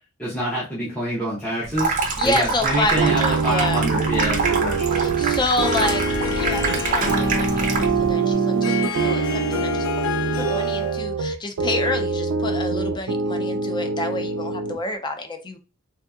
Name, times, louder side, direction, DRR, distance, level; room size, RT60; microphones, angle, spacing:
voice 1, 0.2-1.9 2.2-5.2, equal, 5° left, -9 dB, 0.8 m, -26 dB
Water tap faucet / Sink (filling or washing), 1.6-8.1, right 3 dB, 40° right, 0.5 m, -26 dB
voice 2, 2.2-3.9 4.9-9.9 10.3-15.6, left 2 dB, 20° left, 6 dB, 0.5 m, -28 dB
sound 1, 3.0-14.8, right 4 dB, 85° right, 0.4 m, -24 dB
Harp, 5.6-11.1, left 5 dB, 80° left, 0.5 m, -29 dB
3.5 x 2.8 x 2.3 m, 0.32 s
head